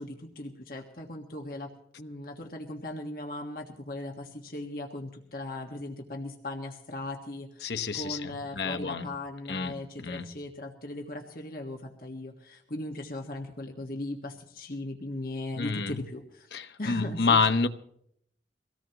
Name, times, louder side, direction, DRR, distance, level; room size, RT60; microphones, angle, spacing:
voice 1, 0.0-1.7 2.0-17.4, left 1 dB, 55° left, 1.6 m, -38 dB
voice 2, 7.6-9.1 9.5-10.3 15.5-16.0 16.5-17.7, left 4 dB, 75° left, 1.0 m, -28 dB
24.0 x 17.5 x 3.0 m
head